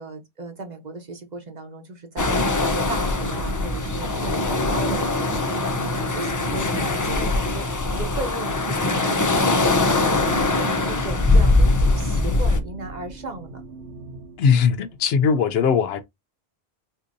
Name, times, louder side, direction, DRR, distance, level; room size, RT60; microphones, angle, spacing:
voice 1, 0.0-13.6, right 3 dB, 45° right, 1.0 m, -36 dB
sound 1, 2.2-12.6, left 2 dB, 30° left, 0.3 m, -22 dB
sound 2, 3.2-15.2, right 2 dB, 80° right, 1.2 m, -40 dB
voice 2, 14.4-16.0, left 6 dB, 75° left, 0.8 m, -19 dB
4.1 x 2.7 x 2.6 m
omnidirectional pair, 1.1 m